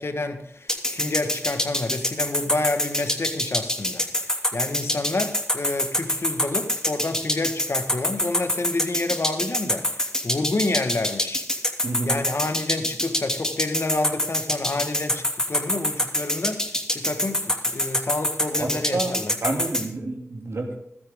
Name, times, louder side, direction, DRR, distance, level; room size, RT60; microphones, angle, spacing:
voice 1, 0.0-11.4 12.0-16.6 16.9-19.3, left 2 dB, 65° left, 7 dB, 1.6 m, -29 dB
sound 1, 0.7-19.8, equal, 10° left, 2.9 m, -25 dB
voice 2, 11.8-12.2 18.5-19.1 19.4-20.7, right 2 dB, 75° right, 1 dB, 2.9 m, -29 dB
16.0 x 13.0 x 3.7 m, 0.74 s
cardioid pair, 45°, 5 cm